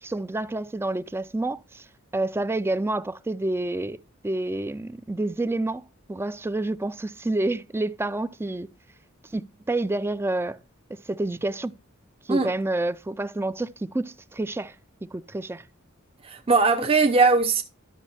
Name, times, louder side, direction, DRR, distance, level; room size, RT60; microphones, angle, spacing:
voice 1, 0.0-1.9 2.1-4.0 4.2-8.7 9.3-10.6 10.9-11.7 12.2-14.8 15.0-15.6, right 2 dB, 10° right, 0.4 m, -28 dB
voice 2, 16.3-17.6, right 4 dB, 25° right, 0.8 m, -20 dB
11.5 x 6.2 x 4.2 m
head